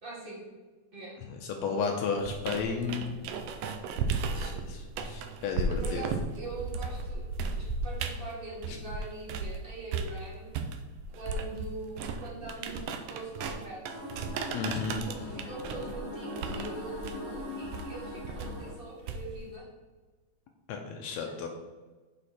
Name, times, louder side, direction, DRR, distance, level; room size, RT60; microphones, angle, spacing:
voice 1, 0.0-0.4 0.9-1.2 5.7-10.5 11.1-14.0 14.9-19.6 21.2-21.3, right 2 dB, 25° right, -6 dB, 1.3 m, -42 dB
voice 2, 1.4-3.1 4.3-6.1 8.7-8.8 14.5-15.0 20.7-21.5, left 5 dB, 80° left, 3 dB, 1.6 m, -33 dB
sound 1, 2.2-9.6 9.9-19.5, right 4 dB, 85° right, 1.4 m, -35 dB
sound 2, 13.9-18.7, left 2 dB, 70° right, 0.8 m, -41 dB
6.4 x 4.9 x 4.2 m, 1.3 s
omnidirectional pair, 3.6 m